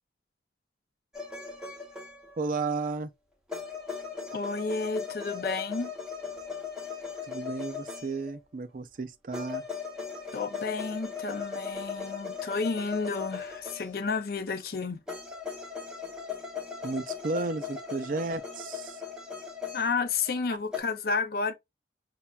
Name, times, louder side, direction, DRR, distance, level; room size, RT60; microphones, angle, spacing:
sound 1, 1.1-2.5 3.5-8.4 9.3-14.2 15.1-20.4 20.7-20.8, left 6 dB, 5° right, 0.8 m, -38 dB
voice 1, 2.4-3.1 7.3-9.6 16.8-19.0, right 3 dB, 45° right, 0.4 m, -33 dB
voice 2, 4.3-5.9 10.3-15.0 19.7-21.5, left 4 dB, 55° left, 0.5 m, -31 dB
5.5 x 2.4 x 2.3 m
head